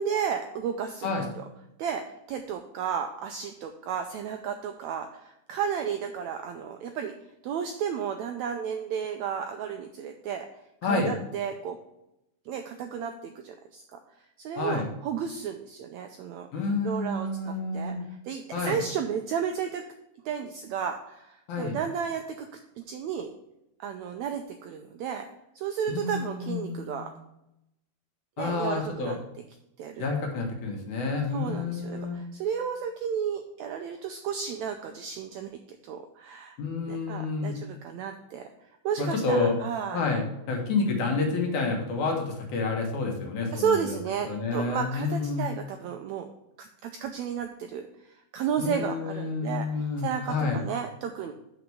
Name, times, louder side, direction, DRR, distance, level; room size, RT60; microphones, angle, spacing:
voice 1, 0.0-1.4 1.8-7.1 7.4-10.5 10.8-11.8 12.5-14.0 14.4-16.5 16.8-17.9 18.2-19.8 20.2-22.5 22.8-23.3 23.8-25.3 25.5-27.1 28.4-29.2 29.8-30.1 31.3-36.6 36.9-38.5 38.8-40.0 43.5-46.3 46.6-51.3, right 7 dB, 85° right, 5 dB, 1.6 m, -33 dB
voice 2, 10.8-11.1 14.6-14.9 16.5-18.0 18.5-18.8 21.5-21.8 25.9-27.1 28.4-29.1 30.0-32.2 36.6-37.6 39.0-39.6 39.9-44.0 44.3-45.5 48.6-50.6, left 4 dB, 65° left, 1 dB, 2.8 m, -29 dB
6.3 x 5.8 x 7.0 m, 0.85 s
omnidirectional pair, 3.9 m